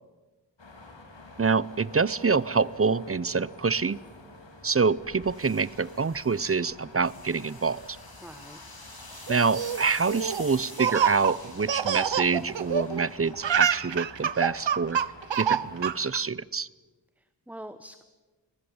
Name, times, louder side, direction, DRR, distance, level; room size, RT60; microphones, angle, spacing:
sound 1, 0.6-16.0, left 2 dB, 85° left, 3.5 m, -49 dB
voice 1, 1.4-4.0 4.6-7.8 9.3-15.0 15.4-16.7, right 4 dB, 30° right, 21 dB, 0.6 m, -26 dB
sound 2, 5.0-13.6, left 2 dB, 55° left, 3.8 m, -48 dB
voice 2, 8.2-8.6 17.2-18.0, right 1 dB, 5° right, 11 dB, 0.9 m, -44 dB
Laughter, 9.3-13.1 13.3-16.2, right 8 dB, 85° right, 0.7 m, -27 dB
22.0 x 20.0 x 8.7 m, 1.3 s
wide cardioid pair, 55°, 43 cm